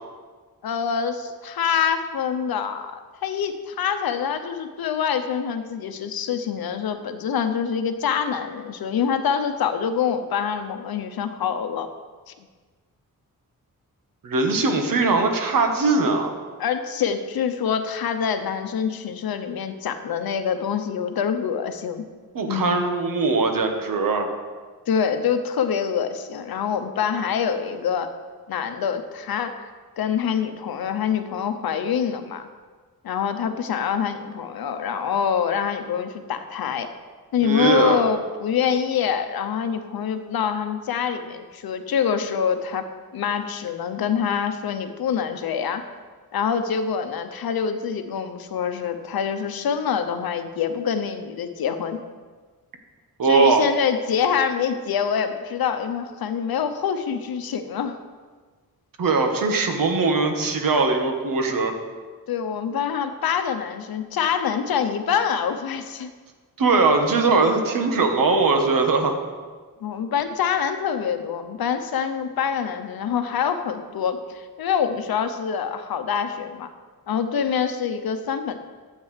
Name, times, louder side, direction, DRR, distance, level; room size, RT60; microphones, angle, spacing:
voice 1, 0.6-11.9 12.3-12.4 16.6-22.0 22.5-22.8 24.9-28.1 28.5-29.5 30.0-32.5 33.0-36.9 37.3-42.9 43.1-45.8 46.3-52.0 53.2-58.0 62.3-66.1 69.8-76.7 77.1-78.6, left 7 dB, 85° left, 9 dB, 0.8 m, -25 dB
voice 2, 14.2-16.3 22.3-24.3 37.4-38.0 53.2-53.7 59.0-61.7 66.6-69.2, right 3 dB, 65° right, 4 dB, 1.3 m, -20 dB
13.0 x 8.3 x 3.3 m, 1.5 s
wide cardioid pair, 95°, 36 cm